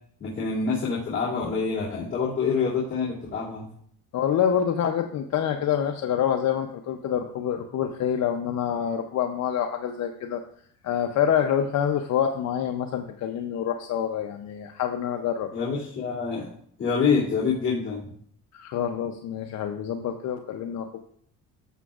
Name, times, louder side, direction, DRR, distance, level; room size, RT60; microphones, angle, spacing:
voice 1, 0.2-3.7 15.5-16.5 16.8-18.1, left 5 dB, 35° left, -8 dB, 2.6 m, -26 dB
voice 2, 4.1-10.4 10.8-15.5 18.5-21.0, left 9 dB, 50° left, 4 dB, 0.7 m, -26 dB
14.0 x 6.2 x 2.4 m, 0.64 s
cardioid pair, 120°, 35 cm